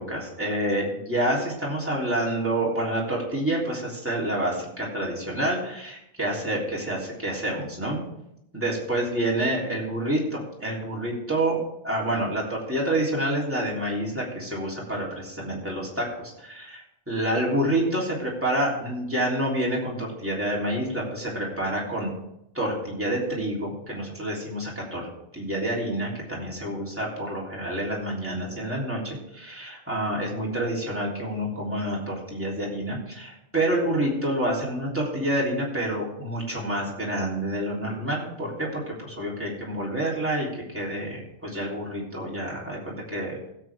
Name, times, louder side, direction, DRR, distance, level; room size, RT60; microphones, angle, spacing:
voice 1, 0.0-8.0 8.5-11.6 11.8-22.1 22.5-25.0 25.3-43.5, right 1 dB, 10° right, -5 dB, 3.4 m, -28 dB
16.5 x 7.8 x 3.6 m, 0.80 s
omnidirectional pair, 1.2 m